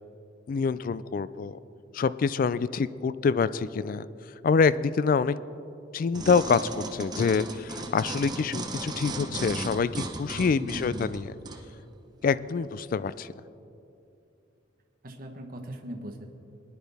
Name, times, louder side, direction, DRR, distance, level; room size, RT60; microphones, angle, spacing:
voice 1, 0.5-1.6 1.9-4.1 4.4-5.4 5.9-11.3 12.2-13.3, left 5 dB, 45° left, 16 dB, 0.3 m, -26 dB
sound 1, 6.1-11.6 12.2-12.3, right 2 dB, 20° right, 0.8 m, -36 dB
voice 2, 10.6-11.2 15.0-16.3, right 1 dB, 45° right, 1 dB, 1.1 m, -39 dB
19.0 x 10.5 x 3.5 m, 2.7 s
head